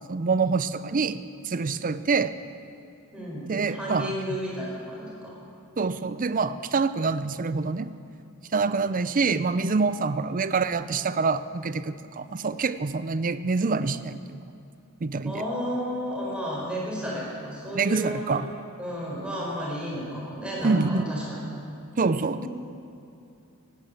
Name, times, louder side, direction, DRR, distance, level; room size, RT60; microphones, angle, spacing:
voice 1, 0.1-2.4 3.5-4.1 5.8-7.9 8.5-14.4 15.0-15.4 17.7-18.5 20.6-21.0 22.0-22.5, right 4 dB, 40° right, 14 dB, 0.5 m, -26 dB
voice 2, 3.1-5.3 15.3-18.4 18.8-21.4, equal, 5° right, -5 dB, 4.4 m, -32 dB
18.0 x 9.4 x 7.7 m, 2.7 s
head